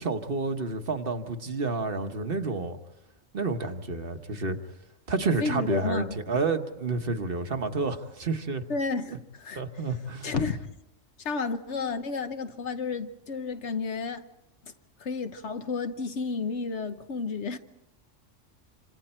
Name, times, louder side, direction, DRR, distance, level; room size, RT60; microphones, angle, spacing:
voice 1, 0.0-2.8 3.3-4.6 5.1-8.6 9.6-10.3, right 3 dB, 45° right, 1.3 m, -29 dB
voice 2, 5.4-6.2 8.7-9.6 10.2-10.7 11.2-14.2 14.6-14.7 15.0-17.6, left 4 dB, 60° left, 1.3 m, -31 dB
27.0 x 26.5 x 4.4 m
omnidirectional pair, 1.3 m